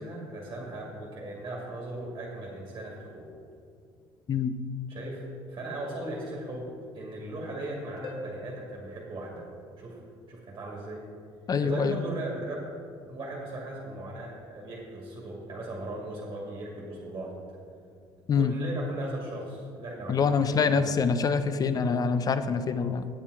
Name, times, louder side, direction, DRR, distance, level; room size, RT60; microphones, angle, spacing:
voice 1, 0.0-3.3 4.9-5.2 5.5-6.7 6.9-9.4 9.8-10.0 10.3-11.0 11.6-12.6 13.0-17.3 18.3-20.8, right 1 dB, 40° right, -3 dB, 2.1 m, -38 dB
Harp, 8.0-10.5 14.0-14.1, equal, 55° left, 1.2 m, -45 dB
voice 2, 11.5-12.0 18.3-18.5 20.1-23.1, left 5 dB, 35° left, 12 dB, 0.6 m, -25 dB
8.8 x 7.3 x 4.8 m, 2.4 s
supercardioid pair, 90°, 11 cm